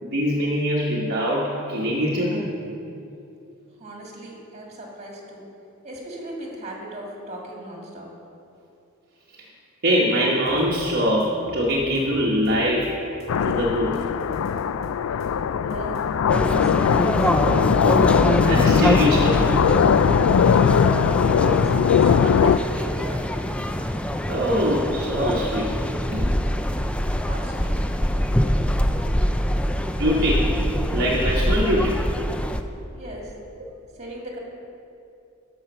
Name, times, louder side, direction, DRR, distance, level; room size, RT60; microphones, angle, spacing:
voice 1, 0.0-2.5 9.8-12.9 13.4-14.0 18.5-19.4 24.3-25.7 26.1-26.3 30.0-30.5 30.9-32.0, equal, 50° right, -4 dB, 1.1 m, -23 dB
voice 2, 3.8-5.4 5.8-8.1 15.6-17.3 21.2-21.7 22.0-23.5 27.2-27.7 28.1-28.6 32.9-33.3 34.0-34.4, right 1 dB, 35° right, -1 dB, 2.1 m, -37 dB
sound 1, 10.5-10.9 11.2-12.9 13.2-14.9 15.2-16.7 17.0-18.5, equal, 30° left, 2.2 m, -42 dB
sound 2, 13.3-22.6, left 7 dB, 80° left, 0.3 m, -20 dB
sound 3, 16.3-32.6, equal, 5° left, 0.4 m, -24 dB
12.0 x 5.6 x 6.8 m, 2.7 s
head